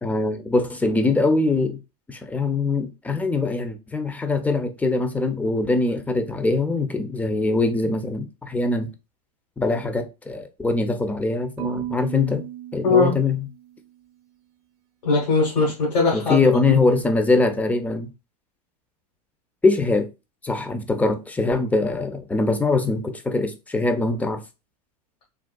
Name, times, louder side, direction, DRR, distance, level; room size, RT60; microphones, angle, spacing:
voice 1, 0.0-1.8 2.1-8.9 9.6-12.5 12.7-13.5 16.1-18.1 19.6-20.1 20.4-24.4, left 3 dB, 5° left, 0.4 m, -22 dB
Marimba xylophone / Wood, 11.6-13.8, right 14 dB, 45° right, 0.6 m, -33 dB
voice 2, 12.8-13.1 15.0-16.9, left 4 dB, 80° left, 1.4 m, -21 dB
3.5 x 2.3 x 2.2 m
hypercardioid pair, 90°, 20 cm